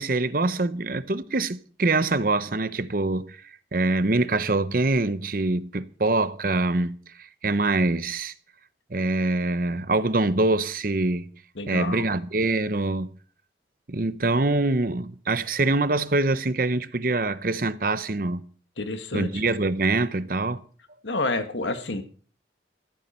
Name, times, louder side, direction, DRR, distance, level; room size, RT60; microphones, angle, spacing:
voice 1, 0.0-3.4 3.7-8.3 8.9-11.3 11.7-13.1 13.9-18.4 19.1-20.6, right 2 dB, 50° right, 0.8 m, -24 dB
voice 2, 11.6-12.1 18.8-19.5 21.0-22.0, left 2 dB, 85° left, 1.8 m, -29 dB
15.0 x 14.0 x 4.4 m
head